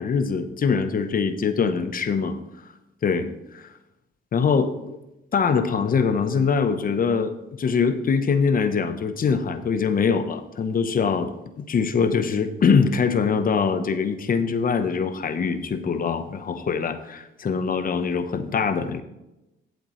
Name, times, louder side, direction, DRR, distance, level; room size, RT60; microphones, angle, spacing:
voice 1, 0.0-2.4 3.0-3.3 3.5-3.6 4.3-5.0 5.3-11.3 11.6-19.0, left 5 dB, 45° left, 10 dB, 0.9 m, -23 dB
11.5 x 8.0 x 3.2 m, 0.92 s
cardioid pair, 90°, 20 cm